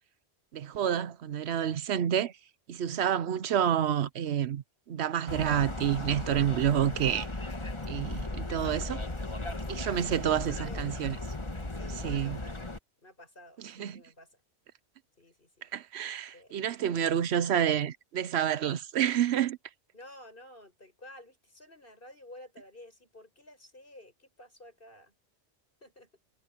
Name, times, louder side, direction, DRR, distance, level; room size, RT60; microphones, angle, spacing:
voice 1, 0.5-2.3 2.7-4.6 4.9-7.3 7.9-9.0 9.7-11.2 12.0-12.4 13.8-14.0 15.7-19.6, right 9 dB, 70° right, 1.0 m, -29 dB
sound 1, 5.3-12.8, left 2 dB, 25° left, 1.5 m, -36 dB
voice 2, 10.1-10.9 11.7-12.6 13.0-14.4 15.2-15.7 16.3-17.3 19.9-25.1 25.8-26.1, left 1 dB, 50° left, 7.5 m, -52 dB
omnidirectional pair, 1.2 m